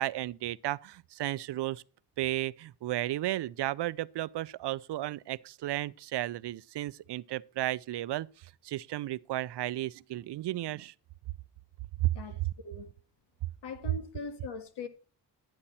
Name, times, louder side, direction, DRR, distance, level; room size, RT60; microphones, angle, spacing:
voice 1, 0.0-1.8 2.2-10.9 12.0-12.1, right 15 dB, 80° right, 0.5 m, -33 dB
voice 2, 12.1-12.9 13.6-14.9, left 5 dB, 85° left, 1.8 m, -41 dB
12.0 x 9.9 x 4.2 m
wide cardioid pair, 125°, 41 cm